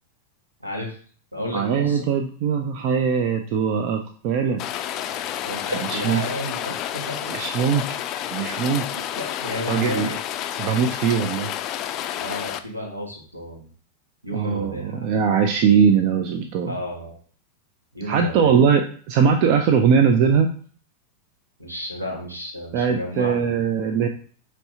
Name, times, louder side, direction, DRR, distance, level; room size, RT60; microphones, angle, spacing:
voice 1, 0.6-0.9 1.3-2.0 5.4-7.3 9.2-10.2 12.2-13.7 14.2-15.1 16.7-17.2 17.9-18.5 21.6-23.3, equal, 85° right, -1 dB, 1.4 m, -32 dB
voice 2, 1.5-4.6 5.9-6.2 7.3-7.8 8.3-8.9 9.7-10.1 10.6-11.5 14.3-16.7 18.0-20.5 22.7-24.1, right 6 dB, 45° right, 5 dB, 0.5 m, -20 dB
Rain, 4.6-12.6, left 11 dB, 35° left, 0.4 m, -30 dB
5.4 x 3.1 x 2.7 m, 0.43 s
figure-of-eight pair, 90°, 0 cm